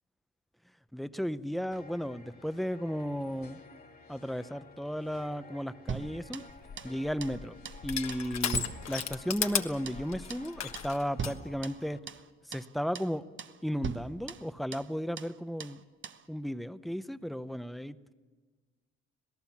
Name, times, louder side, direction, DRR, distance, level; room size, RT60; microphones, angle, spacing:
voice 1, 0.9-3.6 4.1-6.4 6.8-12.0 12.4-13.2 13.6-15.8 16.3-18.1, equal, ahead, 13 dB, 0.7 m, -34 dB
sound 1, 1.7-12.0, left 4 dB, 30° left, 1.9 m, -54 dB
sound 2, 5.9-7.0 7.2-7.4 7.6-7.8 8.1-9.6 9.9-10.0 10.3-10.5 10.7-10.9 11.2-12.3 12.5-12.7 12.9-13.1 13.4-13.6 13.8-14.9 15.2-15.3 15.6-16.2, right 7 dB, 40° right, 0.9 m, -40 dB
Crushing, 6.5-11.4, left 8 dB, 60° left, 1.3 m, -36 dB
26.5 x 17.5 x 7.2 m, 1.4 s
cardioid pair, 90°, 30 cm